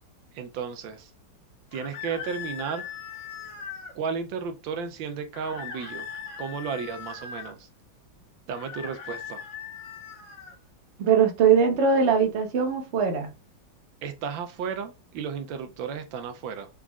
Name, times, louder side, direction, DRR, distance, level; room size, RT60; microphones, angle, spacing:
voice 1, 0.3-1.1 1.7-2.8 3.9-6.1 6.4-7.7 8.5-9.4 14.0-16.7, right 6 dB, 80° right, 1.3 m, -33 dB
sound 1, 1.7-4.0 5.3-7.5 8.5-10.6, left 7 dB, 85° left, 1.7 m, -39 dB
voice 2, 11.0-13.3, right 6 dB, 45° right, 1.0 m, -21 dB
4.1 x 3.7 x 2.3 m
omnidirectional pair, 2.1 m